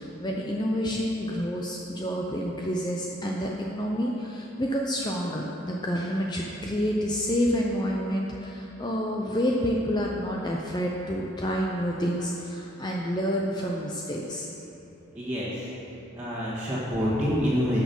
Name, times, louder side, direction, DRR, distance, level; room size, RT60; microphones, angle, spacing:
voice 1, 0.0-14.5, equal, 20° left, -1 dB, 0.6 m, -28 dB
voice 2, 15.1-15.5 16.1-17.8, equal, 15° right, -11 dB, 1.8 m, -27 dB
13.0 x 6.3 x 5.5 m, 3.0 s
head